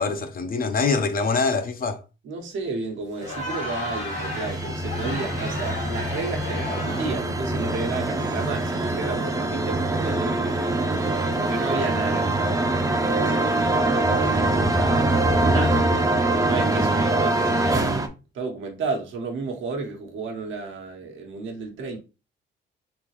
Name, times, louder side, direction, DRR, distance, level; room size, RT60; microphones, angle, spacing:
voice 1, 0.0-2.0, left 4 dB, 45° left, 0.6 m, -24 dB
voice 2, 2.2-10.8 11.3-15.9 16.4-22.0, right 4 dB, 75° right, 1.1 m, -32 dB
Crowd, 3.1-7.3, left 2 dB, 75° left, 1.5 m, -33 dB
sound 1, 3.4-18.1, right 2 dB, 15° right, 0.5 m, -24 dB
3.7 x 2.8 x 3.0 m
cardioid pair, 90°, 20 cm